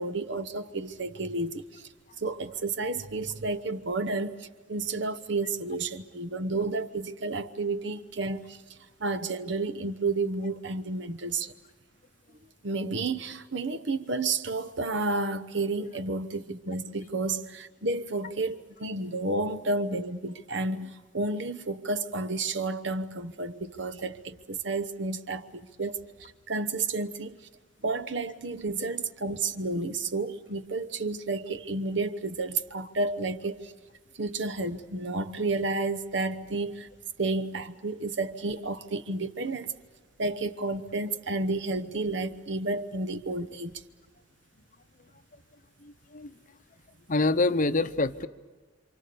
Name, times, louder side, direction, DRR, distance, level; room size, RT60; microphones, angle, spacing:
voice 1, 0.0-1.8 2.2-8.6 9.0-11.5 12.6-26.0 26.5-27.4 27.8-33.7 34.2-36.9 37.2-39.7 40.2-43.8, right 3 dB, 65° right, 1.0 m, -31 dB
voice 2, 45.8-46.3 47.1-48.3, left 3 dB, 40° left, 0.8 m, -26 dB
28.5 x 26.5 x 6.9 m
head